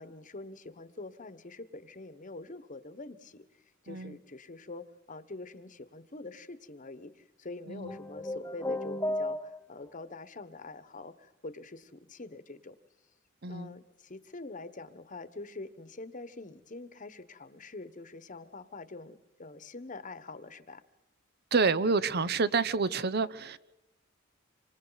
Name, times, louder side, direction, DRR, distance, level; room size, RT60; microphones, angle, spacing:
voice 1, 0.0-3.4 3.8-12.7 13.5-20.8, left 2 dB, 40° left, 13 dB, 1.2 m, -45 dB
voice 2, 3.9-4.2 7.7-8.0 13.4-13.7 21.5-23.6, right 4 dB, 50° right, 15 dB, 0.8 m, -28 dB
sound 1, 7.9-9.9, left 1 dB, 15° left, 0.9 m, -34 dB
27.5 x 25.5 x 4.0 m, 0.96 s
head